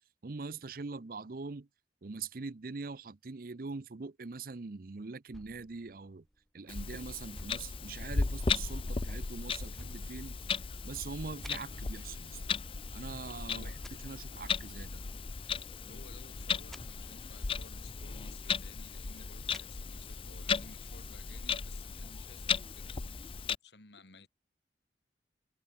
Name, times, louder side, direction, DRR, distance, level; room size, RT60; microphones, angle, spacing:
voice 1, 0.2-1.7 2.0-6.2 6.5-10.4 10.8-12.4 12.9-13.7 14.0-15.0, right 4 dB, 55° right, 0.6 m, -43 dB
sound 1, 5.3-6.7 7.3-8.6 9.7-10.9 11.4-11.5 13.8-13.9 16.7-16.8 19.5-19.6, equal, ahead, 1.0 m, -51 dB
Clock, 6.7-23.6, left 5 dB, 30° left, 0.5 m, -36 dB
voice 2, 13.5-14.1 15.9-22.9 23.2-24.3, left 3 dB, 75° left, 3.8 m, -56 dB
head